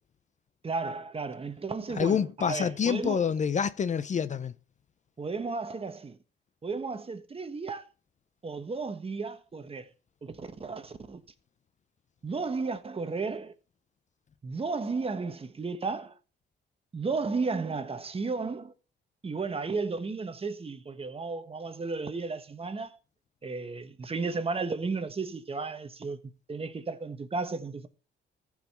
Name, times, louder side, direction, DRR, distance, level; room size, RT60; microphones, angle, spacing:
voice 1, 0.6-3.2 5.2-6.2 6.6-7.9 8.4-9.9 10.2-11.2 12.2-13.5 14.4-16.2 16.9-18.7 19.2-23.0 23.4-26.2 26.5-27.9, right 4 dB, 30° right, 1.2 m, -34 dB
voice 2, 2.0-4.5, left 7 dB, 35° left, 0.5 m, -27 dB
14.5 x 4.9 x 5.4 m
cardioid pair, 90°, 20 cm